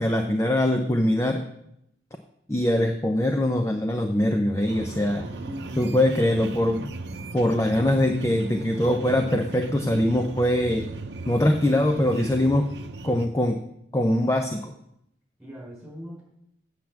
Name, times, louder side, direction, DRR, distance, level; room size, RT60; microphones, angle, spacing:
voice 1, 0.0-1.5 2.5-5.3 5.8-6.9 7.3-10.9 11.3-12.7 13.0-13.6 13.9-14.7, left 1 dB, 15° left, 5 dB, 0.5 m, -22 dB
sound 1, 4.7-13.3, right 3 dB, 85° right, 0.7 m, -37 dB
voice 2, 5.3-6.1 15.4-16.2, equal, 5° right, -4 dB, 4.7 m, -41 dB
8.3 x 5.8 x 7.4 m, 0.77 s
head